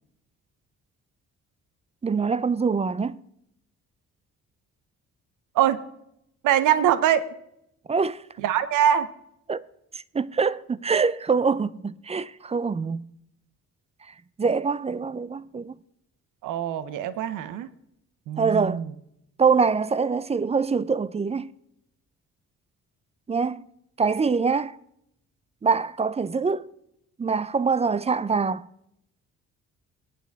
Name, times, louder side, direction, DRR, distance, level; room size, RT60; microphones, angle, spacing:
voice 1, 2.0-3.2 7.9-8.2 9.5-9.6 9.9-13.0 14.1-15.8 18.4-18.8 19.4-21.5 23.3-23.6 24.0-24.8 25.6-26.7 27.2-28.7, right 5 dB, 20° right, 0.4 m, -24 dB
voice 2, 6.4-7.3 8.4-9.1 16.4-17.7 18.3-18.8, right 10 dB, 90° right, 0.8 m, -23 dB
22.0 x 9.1 x 3.5 m
cardioid pair, 90°, 30 cm